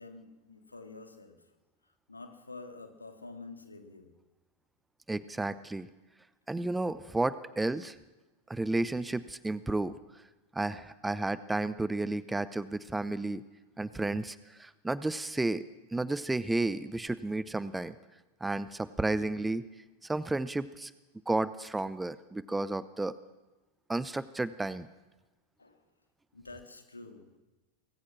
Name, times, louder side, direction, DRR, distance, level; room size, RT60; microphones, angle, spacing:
voice 1, 0.0-1.4 2.1-4.1 25.6-25.8 26.3-27.4, left 3 dB, 80° left, 5 dB, 3.1 m, -48 dB
voice 2, 5.1-5.9 6.5-7.9 8.5-9.9 10.5-13.4 13.8-15.6 15.9-17.9 18.4-19.7 20.0-20.9 21.3-23.1 23.9-24.9, right 2 dB, 5° right, 16 dB, 0.8 m, -32 dB
24.0 x 20.5 x 6.1 m, 1.2 s
figure-of-eight pair, 90°, 0 cm